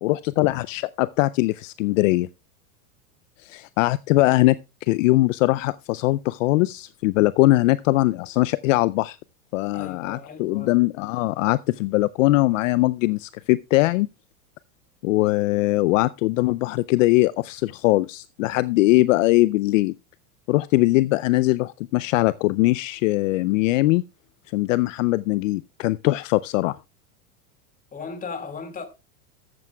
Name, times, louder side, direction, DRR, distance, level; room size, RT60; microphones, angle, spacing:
voice 1, 0.0-2.3 3.4-9.2 9.5-14.1 15.0-19.9 20.5-24.0 24.5-26.8, left 19 dB, 65° left, 0.5 m, -21 dB
voice 2, 9.7-10.8 27.9-28.9, left 5 dB, 20° left, 2.0 m, -36 dB
14.0 x 12.0 x 2.2 m
hypercardioid pair, 120°, 43 cm